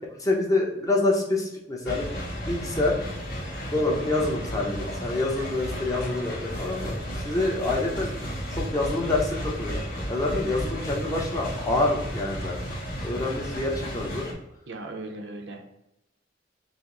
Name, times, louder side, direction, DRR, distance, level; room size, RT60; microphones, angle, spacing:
voice 1, 0.2-2.1 2.5-2.9 3.6-9.8 10.1-12.7 13.0-14.3, left 2 dB, 20° left, -1 dB, 0.7 m, -27 dB
sound 1, 1.8-14.3, equal, 55° left, 1.2 m, -33 dB
voice 2, 14.7-15.6, right 2 dB, 65° right, 4 dB, 0.6 m, -37 dB
5.0 x 2.0 x 3.8 m, 0.87 s
head